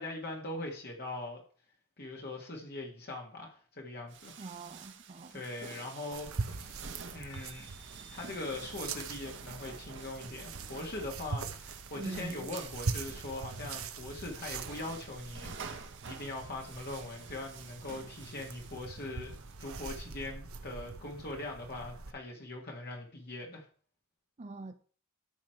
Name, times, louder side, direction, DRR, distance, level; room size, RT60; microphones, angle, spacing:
voice 1, 0.0-1.4 2.0-4.4 5.3-6.8 7.1-7.7 8.1-23.6, left 2 dB, 50° left, 1.6 m, -41 dB
sound 1, 4.1-20.0, right 6 dB, 60° right, 1.4 m, -50 dB
voice 2, 4.4-5.4 12.0-12.5 24.4-24.7, right 2 dB, 30° right, 0.6 m, -43 dB
sound 2, 6.1-22.1, right 4 dB, 85° right, 1.0 m, -42 dB
12.5 x 6.1 x 4.5 m
head